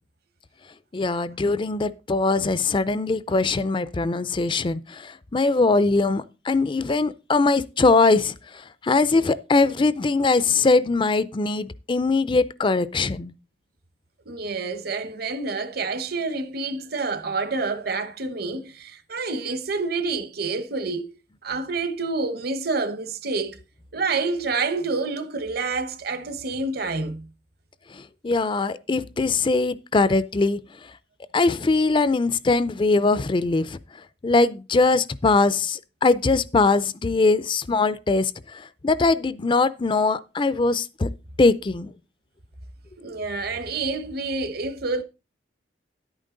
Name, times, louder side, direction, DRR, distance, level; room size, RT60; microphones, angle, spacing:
voice 1, 0.9-13.3 27.9-30.6 31.3-33.8 34.2-41.1 41.4-41.9, left 3 dB, 30° left, 0.4 m, -21 dB
voice 2, 14.3-21.1 21.4-23.6 23.9-27.3 43.0-45.0, right 3 dB, 60° right, 1.2 m, -28 dB
11.0 x 9.0 x 3.8 m
head